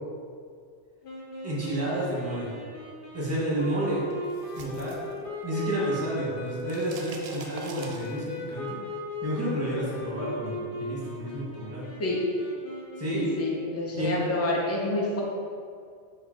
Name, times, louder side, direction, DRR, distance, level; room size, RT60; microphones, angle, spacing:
sound 1, 1.0-13.7, left 2 dB, 55° left, 0.8 m, -38 dB
voice 1, 1.4-2.5 3.1-4.0 4.5-8.8 9.2-11.8 13.0-13.4 14.0-14.3, right 1 dB, 15° right, -7 dB, 1.1 m, -30 dB
sound 2, 4.1-5.8 6.1-8.5, right 3 dB, 80° right, 0.3 m, -44 dB
voice 2, 13.1-15.2, left 2 dB, 20° left, -3 dB, 0.4 m, -28 dB
4.9 x 2.4 x 4.4 m, 2.2 s
omnidirectional pair, 1.2 m